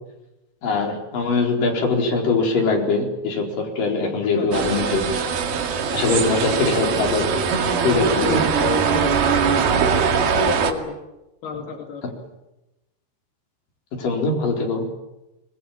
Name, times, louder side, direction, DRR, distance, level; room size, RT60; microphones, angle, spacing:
voice 1, 0.6-5.0 5.9-7.4 7.8-8.4 13.9-14.9, left 3 dB, 60° left, 1 dB, 6.0 m, -22 dB
voice 2, 4.2-4.6 6.1-6.2 7.9-9.5 10.3-11.0 11.4-12.1, left 6 dB, 85° left, 2 dB, 4.5 m, -31 dB
sound 1, 4.5-10.7, right 6 dB, 75° right, 4.1 m, -21 dB
26.0 x 21.0 x 9.0 m, 0.98 s
omnidirectional pair, 4.5 m